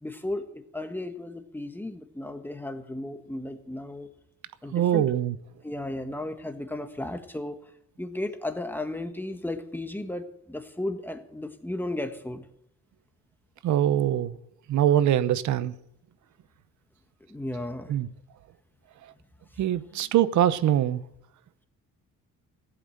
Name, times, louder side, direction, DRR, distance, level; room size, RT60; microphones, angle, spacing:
voice 1, 0.0-4.1 4.6-5.1 5.6-7.6 8.0-12.4 17.3-17.9, left 1 dB, 5° left, 1.5 m, -34 dB
voice 2, 4.7-5.4 13.6-14.4 14.7-15.7 17.9-18.1 19.6-21.0, right 11 dB, 75° right, 0.9 m, -23 dB
15.5 x 8.0 x 8.0 m
cardioid pair, 90°, 30 cm